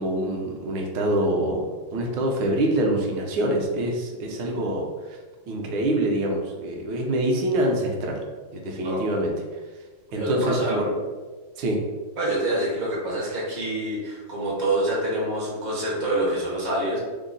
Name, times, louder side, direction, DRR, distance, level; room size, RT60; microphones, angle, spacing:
voice 1, 0.0-5.2 5.5-8.2 8.5-9.3 10.1-10.9 11.6-11.8, right 1 dB, 70° right, 1 dB, 1.3 m, -25 dB
voice 2, 10.1-10.8 12.2-17.0, right 1 dB, 45° right, -5 dB, 0.5 m, -26 dB
3.7 x 2.0 x 3.7 m, 1.4 s
omnidirectional pair, 2.3 m